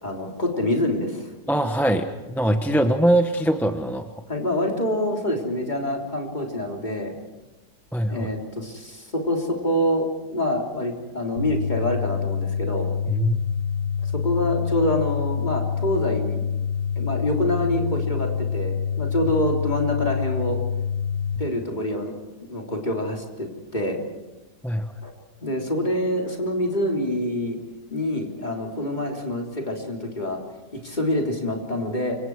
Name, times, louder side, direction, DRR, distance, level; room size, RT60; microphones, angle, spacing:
voice 1, 0.0-1.3 4.3-7.2 8.1-12.9 14.1-16.4 17.0-20.6 21.4-22.1 22.5-24.0 25.0-25.1 25.4-27.6 27.9-30.4 30.7-32.2, left 1 dB, 25° left, 0 dB, 3.7 m, -26 dB
voice 2, 1.5-4.1 7.9-8.3 13.1-13.4 24.6-24.9, right 1 dB, ahead, 6 dB, 0.8 m, -22 dB
sound 1, 11.4-21.4, left 7 dB, 80° left, 3.2 m, -26 dB
29.0 x 25.5 x 4.8 m, 1.1 s
omnidirectional pair, 1.8 m